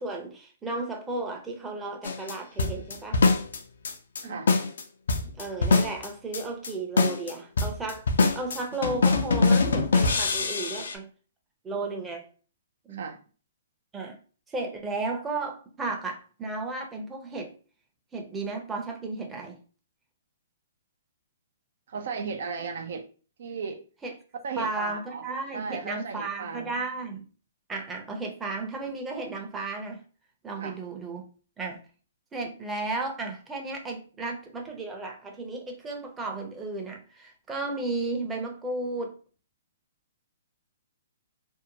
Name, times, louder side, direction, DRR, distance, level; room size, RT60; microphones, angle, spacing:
voice 1, 0.0-3.2 4.2-4.4 5.2-8.1 8.3-11.1 11.6-12.3 12.8-13.0 13.9-14.2 14.5-17.5 18.1-19.6 24.0-24.1 24.6-27.2 27.7-30.0 30.4-31.2 31.6-31.8 32.3-39.1, right 3 dB, 15° right, 0.6 m, -34 dB
sound 1, 2.0-2.3 2.6-3.6 3.8-4.2 4.5-4.8 5.1-6.1 6.3-6.7 7.0-10.9, left 3 dB, 75° left, 0.4 m, -23 dB
voice 2, 21.9-23.1 23.4-23.8 24.4-25.3 25.5-26.7 30.6-30.8, right 5 dB, 65° right, 0.4 m, -35 dB
2.6 x 2.1 x 2.8 m
hypercardioid pair, 135°, 0 cm